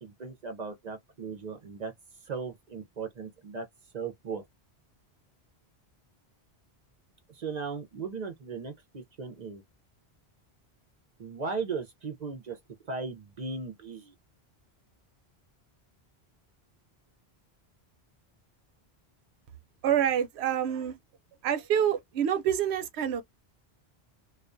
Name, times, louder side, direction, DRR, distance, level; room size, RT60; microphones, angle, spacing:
voice 1, 0.0-1.9 2.2-3.7 3.9-4.4 7.3-9.6 11.2-12.6 12.9-14.1, right 5 dB, 50° right, 0.6 m, -37 dB
voice 2, 19.8-21.0 21.4-23.2, right 9 dB, 85° right, 0.8 m, -27 dB
2.3 x 2.2 x 2.4 m
omnidirectional pair, 1.1 m